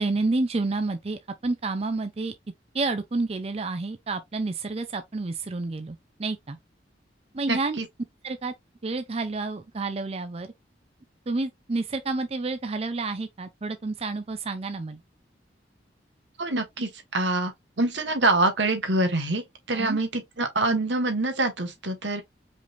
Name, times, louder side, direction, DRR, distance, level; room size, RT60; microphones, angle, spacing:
voice 1, 0.0-2.3 2.7-6.6 7.3-7.8 8.2-8.5 8.8-10.5 11.3-15.0 19.7-20.0, right 3 dB, 35° right, 0.5 m, -29 dB
voice 2, 7.5-7.9 16.4-22.2, right 2 dB, 80° right, 1.6 m, -25 dB
5.1 x 3.4 x 2.5 m
head